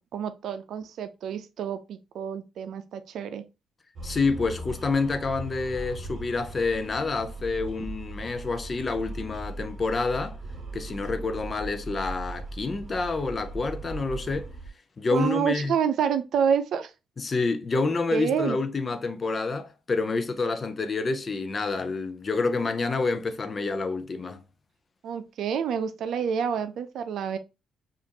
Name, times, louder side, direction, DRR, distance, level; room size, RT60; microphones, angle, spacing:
voice 1, 0.0-3.4 15.1-16.9 18.1-18.6 25.0-27.4, right 7 dB, 70° right, 0.5 m, -28 dB
voice 2, 4.0-10.4 10.7-14.5 15.0-15.7 17.2-24.4, left 3 dB, 35° left, 0.6 m, -28 dB
sound 1, 4.0-14.7, right 2 dB, 45° right, 1.1 m, -39 dB
5.0 x 2.6 x 2.9 m
cardioid pair, 90°, 0 cm